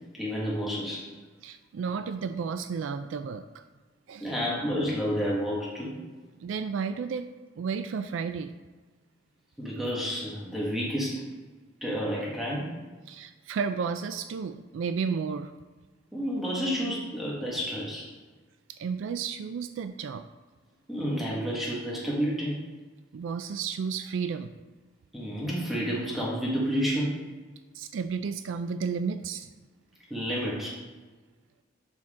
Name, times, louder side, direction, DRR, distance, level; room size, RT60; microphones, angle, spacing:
voice 1, 0.2-1.1 4.2-5.9 9.6-11.3 11.8-12.7 16.1-18.1 20.9-22.6 25.1-27.2 30.1-30.8, equal, ahead, -6 dB, 1.6 m, -30 dB
voice 2, 1.4-3.6 4.1-4.3 6.4-7.3 7.6-8.5 13.1-15.5 18.7-20.3 23.1-24.5 27.7-29.5, right 6 dB, 80° right, 10 dB, 0.3 m, -32 dB
7.5 x 5.9 x 3.7 m, 1.4 s
head